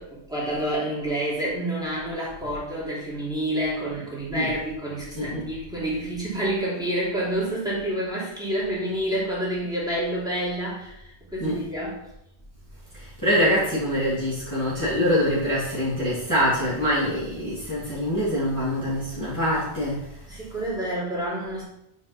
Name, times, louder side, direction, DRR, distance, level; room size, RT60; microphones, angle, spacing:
voice 1, 0.0-12.0 20.3-21.6, right 1 dB, 5° right, -8 dB, 3.1 m, -28 dB
voice 2, 5.2-5.5 11.4-11.5 12.9-20.0, equal, 15° left, -11 dB, 2.4 m, -24 dB
8.7 x 5.2 x 4.3 m, 0.81 s
omnidirectional pair, 1.1 m